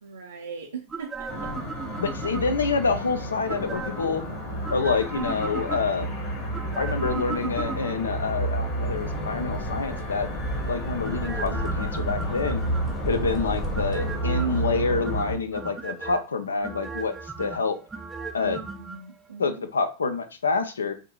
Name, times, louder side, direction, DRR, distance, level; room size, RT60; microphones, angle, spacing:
voice 1, 0.0-1.5 18.4-19.7, right 6 dB, 70° right, 0.5 m, -40 dB
sound 1, 0.9-2.7 3.5-4.2 4.6-6.1 6.5-8.2 11.0-13.1 13.7-14.6 15.0-16.2 16.6-19.0 19.3-19.4, right 4 dB, 15° right, 0.5 m, -37 dB
sound 2, 1.3-15.4, right 1 dB, 40° left, 1.5 m, -31 dB
voice 2, 2.0-4.2 4.7-6.1 6.8-10.3 10.7-12.6 13.1-17.8 18.3-18.6 19.4-20.9, left 4 dB, 70° left, 0.5 m, -27 dB
sound 3, 8.8-14.2, equal, 20° left, 0.9 m, -34 dB
6.2 x 2.6 x 2.2 m
figure-of-eight pair, 90°, 0 cm